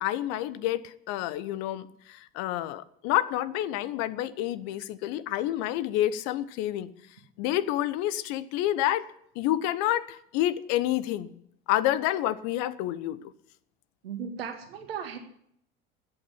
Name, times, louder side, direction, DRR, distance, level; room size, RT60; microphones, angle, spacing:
voice 1, 0.0-6.9 7.4-9.0 9.3-11.3 11.7-13.2, left 13 dB, 65° left, 16 dB, 1.0 m, -28 dB
voice 2, 14.0-15.2, right 7 dB, 85° right, 5 dB, 2.2 m, -36 dB
14.5 x 8.9 x 9.9 m, 0.70 s
hypercardioid pair, 70°, 29 cm